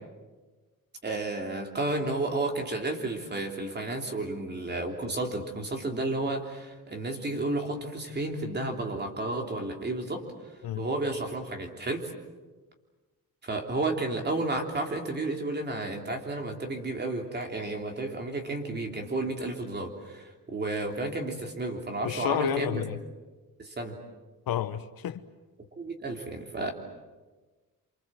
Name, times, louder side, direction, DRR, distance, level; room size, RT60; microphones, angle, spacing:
voice 1, 1.0-10.2 10.8-12.1 13.4-22.8 23.6-23.9 25.8-26.7, right 2 dB, 30° right, 3.4 m, -32 dB
voice 2, 22.0-23.0 24.5-25.2, left 10 dB, 80° left, 1.2 m, -30 dB
29.0 x 26.0 x 7.8 m
wide cardioid pair, 175°, 35 cm